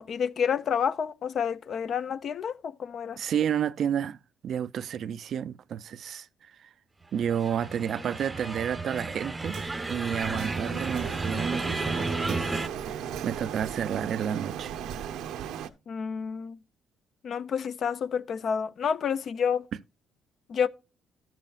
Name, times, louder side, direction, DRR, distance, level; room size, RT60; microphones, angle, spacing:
voice 1, 0.0-3.2 15.9-16.6 17.2-19.7 20.5-20.7, left 7 dB, 50° left, 0.6 m, -29 dB
voice 2, 3.2-6.7 7.1-14.8, right 8 dB, 60° right, 0.4 m, -31 dB
sound 1, 7.2-12.7, right 2 dB, 15° right, 0.7 m, -33 dB
Wind instrument woodwind instrument, 7.6-13.9, left 5 dB, 70° left, 1.7 m, -55 dB
Printer, 9.5-15.7, right 9 dB, 85° right, 0.8 m, -36 dB
13.0 x 7.4 x 2.4 m
cardioid pair, 115°, 0 cm